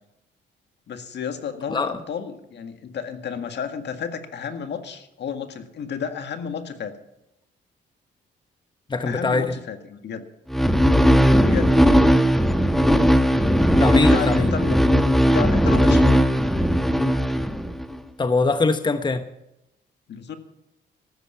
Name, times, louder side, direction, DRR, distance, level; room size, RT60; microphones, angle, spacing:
voice 1, 0.9-6.9 9.1-10.3 11.4-12.1 14.0-14.8 15.3-16.3 20.1-20.4, left 7 dB, 60° left, 1.9 m, -32 dB
voice 2, 8.9-9.6 13.8-14.5 18.2-19.3, left 3 dB, 20° left, 1.0 m, -22 dB
sound 1, 10.5-18.0, equal, ahead, 1.1 m, -18 dB
14.0 x 13.5 x 5.7 m
cardioid pair, 90°, 20 cm